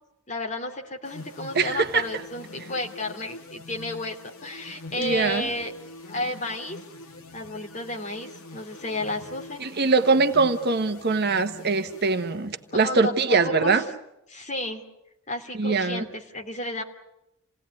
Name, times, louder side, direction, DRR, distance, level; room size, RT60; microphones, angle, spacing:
voice 1, 0.3-4.2 4.4-5.7 6.1-6.8 7.3-9.6 12.8-13.8 14.3-14.8 15.3-16.8, left 2 dB, 35° left, 3 dB, 2.9 m, -32 dB
sound 1, 1.0-12.9, left 2 dB, 70° left, 2.3 m, -44 dB
voice 2, 1.5-2.1 5.0-5.5 9.6-13.8 15.5-16.0, right 4 dB, 45° right, 8 dB, 1.2 m, -22 dB
28.5 x 18.5 x 9.7 m, 0.86 s
head